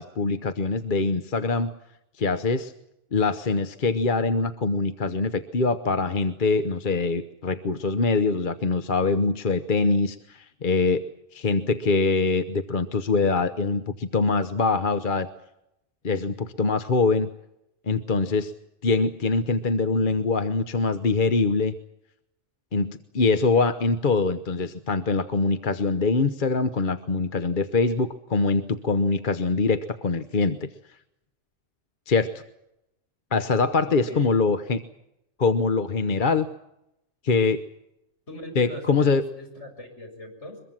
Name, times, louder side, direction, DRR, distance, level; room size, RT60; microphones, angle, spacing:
voice 1, 0.0-1.7 2.2-2.7 3.1-11.0 11.3-15.3 16.0-17.3 17.9-18.5 18.8-21.7 22.7-30.7 32.1-32.4 33.3-34.8 35.4-36.5 37.2-37.6 38.6-39.2, left 4 dB, 45° left, 10 dB, 1.1 m, -23 dB
voice 2, 33.8-34.4 38.3-40.6, left 1 dB, 65° left, 3 dB, 7.3 m, -40 dB
23.5 x 22.5 x 7.5 m, 0.83 s
omnidirectional pair, 1.3 m